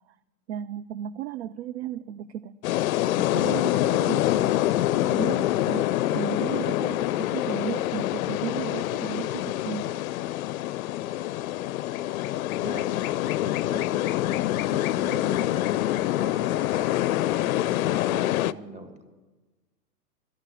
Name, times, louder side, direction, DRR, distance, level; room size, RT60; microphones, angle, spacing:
voice 1, 0.5-2.6 3.2-9.9, right 9 dB, 45° right, 16 dB, 0.4 m, -35 dB
sound 1, 2.6-18.5, left 14 dB, 60° left, 0.5 m, -26 dB
voice 2, 12.6-13.1 13.4-15.8 16.1-17.0 17.5-19.0, right 2 dB, 15° right, 5 dB, 1.8 m, -42 dB
12.5 x 11.0 x 8.5 m, 1.3 s
hypercardioid pair, 115°, 49 cm